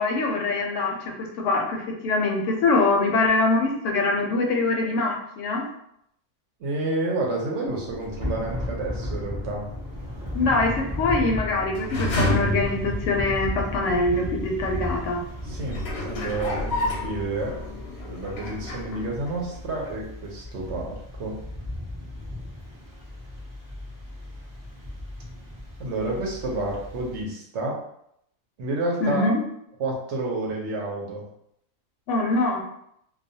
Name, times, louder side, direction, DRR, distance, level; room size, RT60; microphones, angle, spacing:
voice 1, 0.0-5.7 10.3-15.2 29.0-29.4 32.1-32.6, left 3 dB, 70° left, 1 dB, 0.8 m, -24 dB
voice 2, 6.6-9.7 15.4-17.6 18.0-21.4 25.8-27.8 28.6-29.2 29.8-31.3, right 2 dB, 65° right, -1 dB, 0.9 m, -30 dB
sound 1, 7.7-13.8 14.4-14.5 15.3-19.6 19.9-20.0, left 1 dB, 85° left, 1.1 m, -32 dB
Thunder / Rain, 8.2-27.2, left 1 dB, 30° right, 0.4 m, -36 dB
2.3 x 2.2 x 2.6 m, 0.74 s
omnidirectional pair, 1.4 m